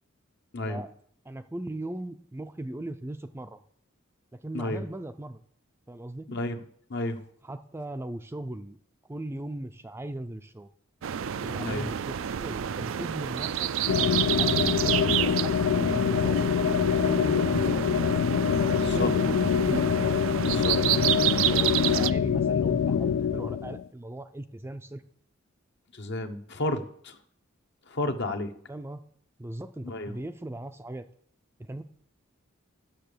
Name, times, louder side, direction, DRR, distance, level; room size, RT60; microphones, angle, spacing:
voice 1, 1.2-3.6 4.3-5.4 5.9-6.3 7.4-8.8 9.1-10.7 11.4-13.7 14.4-16.5 17.0-17.9 18.7-19.8 20.7-25.0 28.7-29.0 29.4-31.1 31.6-31.8, right 1 dB, 10° right, 8 dB, 0.4 m, -38 dB
voice 2, 6.3-6.6 6.9-7.2 11.6-11.9 18.7-19.1 20.4-20.8 25.9-27.2 27.9-28.5 29.8-30.1, left 2 dB, 55° left, 7 dB, 1.0 m, -32 dB
sound 1, 11.0-22.1, right 10 dB, 70° right, 0.4 m, -29 dB
sound 2, 13.9-23.8, left 7 dB, 75° left, 0.3 m, -25 dB
10.0 x 6.7 x 6.8 m, 0.64 s
head